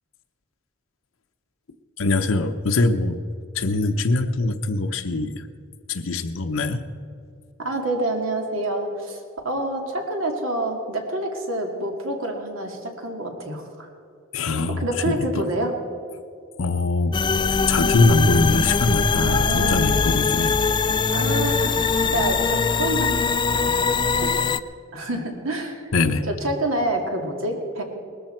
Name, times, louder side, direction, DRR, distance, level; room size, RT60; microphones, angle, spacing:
voice 1, 2.0-3.2 3.5-5.4 5.9-6.8 14.3-15.4 16.6-17.2 17.7-20.6 25.9-26.2, left 3 dB, 85° left, 6 dB, 0.8 m, -22 dB
voice 2, 7.6-13.9 14.8-15.7 19.1-19.9 21.1-21.8 22.1-23.1 23.5-23.7 24.2-24.3 24.9-25.9 26.3-27.8, right 1 dB, 90° right, 2 dB, 2.3 m, -27 dB
sound 1, 17.1-24.6, left 5 dB, 25° left, 0.3 m, -22 dB
19.5 x 13.5 x 4.5 m, 2.5 s
head